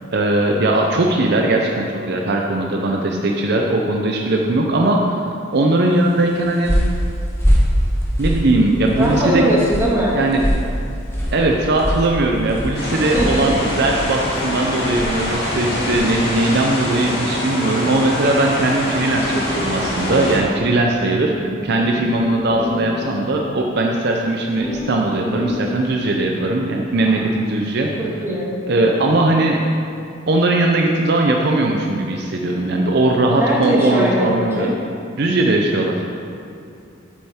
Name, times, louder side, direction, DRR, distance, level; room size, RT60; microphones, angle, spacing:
voice 1, 0.1-5.2 5.5-6.7 8.2-9.4 10.1-10.4 11.3-27.9 28.7-29.6 30.3-34.7 35.2-36.0, right 2 dB, 55° right, 1 dB, 0.6 m, -19 dB
sound 1, 6.1-16.2, equal, 15° left, 1.3 m, -23 dB
voice 2, 9.0-10.2 12.9-13.5 21.2-21.6 28.0-28.5 33.4-34.7, right 1 dB, 15° right, -6 dB, 1.7 m, -20 dB
sound 2, 9.2-9.5 11.4-15.5 15.7-17.3 18.2-18.3 18.8-18.9 19.2-20.7 21.0-21.1 21.3-21.4 21.7-23.4 24.6-26.3 26.9-27.3, left 2 dB, 30° left, 1.8 m, -32 dB
sound 3, 12.7-20.4, left 1 dB, 55° left, 1.8 m, -24 dB
8.4 x 7.7 x 3.6 m, 2.5 s
head